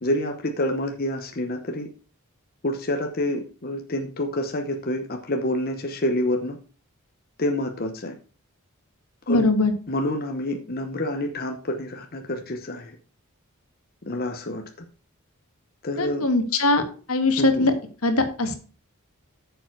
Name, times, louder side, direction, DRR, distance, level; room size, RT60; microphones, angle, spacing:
voice 1, 0.0-1.9 2.6-6.6 7.4-8.1 9.3-9.5 9.9-13.0 14.0-14.6 15.8-16.3 17.4-17.7, left 1 dB, 45° left, 4 dB, 0.9 m, -27 dB
voice 2, 9.3-9.7 16.0-16.8 17.1-17.7 18.0-18.6, left 2 dB, 80° left, 7 dB, 1.6 m, -21 dB
8.9 x 7.1 x 4.5 m, 0.39 s
head